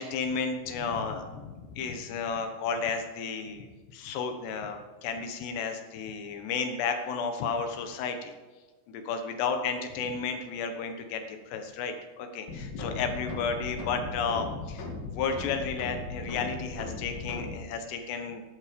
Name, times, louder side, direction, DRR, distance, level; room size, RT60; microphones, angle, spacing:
voice 1, 0.0-3.7 3.9-8.3 8.9-14.9 15.1-18.4, left 5 dB, 90° left, 6 dB, 3.5 m, -32 dB
sound 1, 12.5-17.5, left 3 dB, 60° left, 3.8 m, -37 dB
15.0 x 11.5 x 5.2 m, 1.3 s
omnidirectional pair, 4.8 m